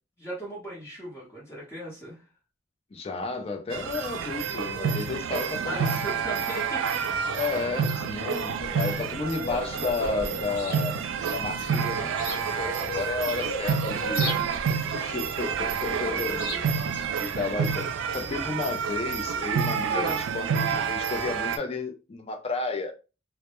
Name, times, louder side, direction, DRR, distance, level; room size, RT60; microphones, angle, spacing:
voice 1, 0.2-2.2 5.6-7.0 8.7-9.0 16.1-16.6 19.9-20.2, equal, 15° left, 0.9 m, -38 dB
voice 2, 2.9-6.0 7.3-11.0 11.3-14.3 14.9-16.4 17.1-22.9, left 4 dB, 30° left, 0.4 m, -32 dB
sound 1, 3.7-21.6, right 6 dB, 85° right, 0.3 m, -29 dB
Bird, 8.2-10.7 11.8-12.0 12.3-14.7, left 1 dB, 90° left, 0.9 m, -37 dB
Chirp tweet, 10.2-17.8, left 2 dB, 65° left, 0.9 m, -42 dB
2.1 x 2.0 x 2.9 m
head